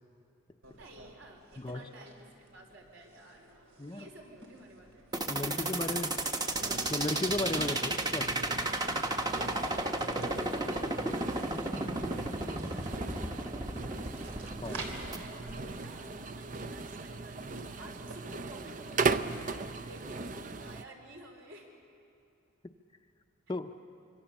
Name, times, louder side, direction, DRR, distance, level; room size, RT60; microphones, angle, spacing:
sound 1, 0.6-20.1, right 2 dB, 85° right, 3.2 m, -53 dB
voice 1, 0.8-5.1 5.4-6.6 7.7-7.9 8.6-14.1 14.9-21.7, right 1 dB, 65° right, 1 dB, 4.7 m, -52 dB
sound 2, 5.1-15.2, right 2 dB, 20° right, 1.0 m, -33 dB
voice 2, 5.3-6.1 6.9-8.4 14.6-14.8 23.5-23.7, left 2 dB, 20° left, 7 dB, 0.6 m, -35 dB
sound 3, 6.6-20.8, right 4 dB, 40° right, 0.6 m, -38 dB
25.5 x 25.0 x 7.2 m, 2.6 s
head